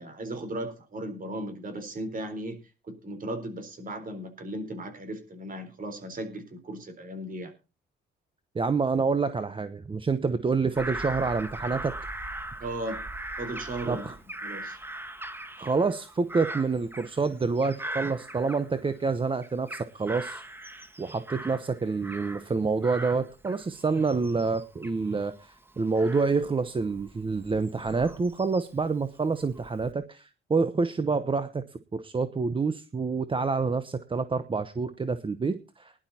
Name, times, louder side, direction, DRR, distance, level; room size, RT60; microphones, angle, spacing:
voice 1, 0.0-2.6 2.8-7.5 12.6-13.0 13.4-14.1 14.4-14.8, right 1 dB, 45° right, 8 dB, 4.1 m, -36 dB
voice 2, 8.5-11.9 13.9-14.1 15.6-20.4 21.0-31.6 31.9-35.9, right 4 dB, 25° right, 12 dB, 0.9 m, -27 dB
Bird vocalization bird call bird song / Crow, 10.7-19.1 19.4-22.5 22.8-28.8 29.4-29.9, right 1 dB, 10° right, 1.4 m, -40 dB
20.5 x 11.5 x 2.8 m, 0.30 s
cardioid pair, 90°, 20 cm